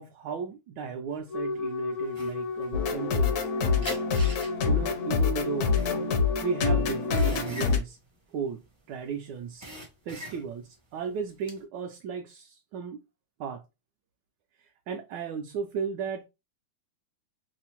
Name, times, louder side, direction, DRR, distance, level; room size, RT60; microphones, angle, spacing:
voice 1, 0.0-3.9 4.6-5.7 6.4-8.0 8.3-8.6 8.9-9.7 10.1-13.0 13.4-13.6 14.6-16.3, right 6 dB, 75° right, 1.1 m, -35 dB
Wind instrument woodwind instrument, 1.3-7.4, left 3 dB, 90° left, 2.3 m, -33 dB
sound 1, 2.1-3.4 3.8-9.1 9.4-10.7 11.1-11.6, right 1 dB, 25° right, 0.5 m, -42 dB
sound 2, 2.7-7.8, left 5 dB, 65° left, 1.0 m, -26 dB
5.4 x 2.0 x 2.9 m
omnidirectional pair, 2.1 m